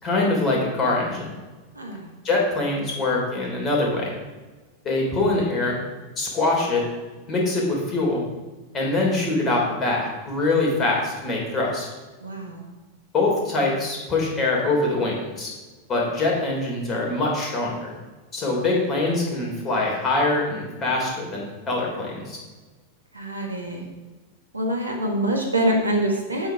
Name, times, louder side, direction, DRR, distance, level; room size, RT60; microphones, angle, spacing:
voice 1, 0.0-1.3 2.2-4.1 4.9-5.8 6.2-6.8 7.3-8.2 8.7-11.9 13.1-15.5 15.9-17.9 18.3-22.4, left 2 dB, 25° left, -2 dB, 3.5 m, -23 dB
voice 2, 1.7-2.1 12.2-12.7 23.1-23.8 24.5-26.5, right 1 dB, 80° right, 1 dB, 1.7 m, -25 dB
8.3 x 8.0 x 5.0 m, 1.3 s
figure-of-eight pair, 90°, 0 cm